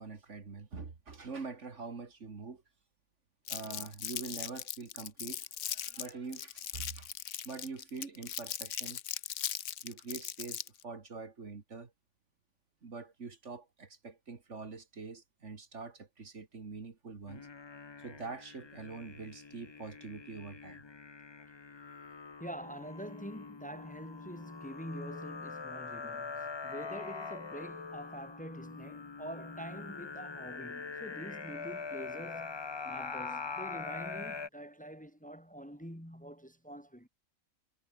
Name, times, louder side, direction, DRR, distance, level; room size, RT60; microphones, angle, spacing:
voice 1, 0.0-2.6 3.5-9.0 9.8-11.9 12.8-17.5 18.0-20.8, right 4 dB, 60° right, 2.4 m, -45 dB
Crumpling crinkling, 3.5-10.8, left 10 dB, 70° left, 1.1 m, -39 dB
sound 1, 17.3-34.5, left 4 dB, 30° left, 0.5 m, -43 dB
voice 2, 22.4-37.1, equal, 5° left, 2.3 m, -45 dB
omnidirectional pair, 1.4 m